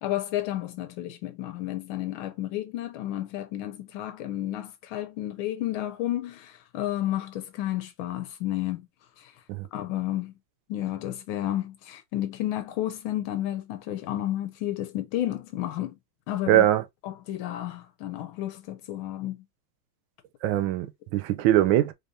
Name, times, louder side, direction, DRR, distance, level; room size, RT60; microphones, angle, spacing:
voice 1, 0.0-8.9 9.2-9.4 9.7-10.3 10.7-16.0 16.3-16.7 17.0-19.4, left 13 dB, 90° left, 1.5 m, -31 dB
voice 2, 16.5-16.8 20.4-21.9, right 13 dB, 80° right, 1.4 m, -22 dB
3.7 x 3.4 x 2.6 m
omnidirectional pair, 2.2 m